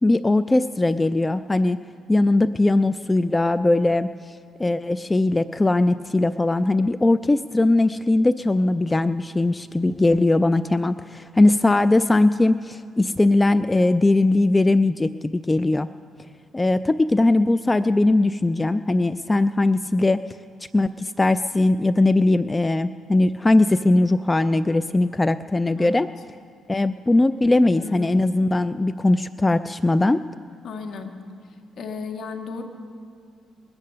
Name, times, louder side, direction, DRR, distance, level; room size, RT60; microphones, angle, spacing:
voice 1, 0.0-1.8 2.1-15.9 16.5-20.2 20.7-26.1 26.7-30.2, left 2 dB, 15° left, 12 dB, 0.3 m, -20 dB
voice 2, 27.7-28.2 30.6-31.1 31.8-32.6, left 4 dB, 65° left, 4 dB, 1.6 m, -34 dB
21.5 x 8.4 x 6.7 m, 2.3 s
cardioid pair, 90°, 0 cm